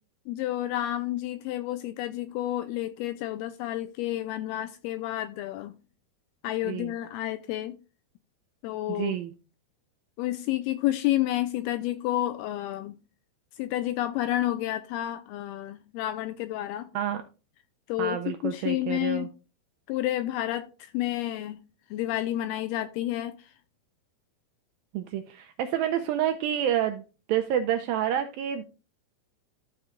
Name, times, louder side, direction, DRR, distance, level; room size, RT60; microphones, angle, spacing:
voice 1, 0.3-5.7 6.4-7.8 8.6-9.2 10.2-13.0 13.6-16.9 17.9-19.3 19.9-21.6 21.9-23.5, left 14 dB, 80° left, 2.4 m, -30 dB
voice 2, 8.9-9.3 16.9-17.2 18.0-19.3 24.9-27.0 27.3-28.6, right 10 dB, 90° right, 2.0 m, -28 dB
13.0 x 4.5 x 3.7 m
omnidirectional pair, 4.8 m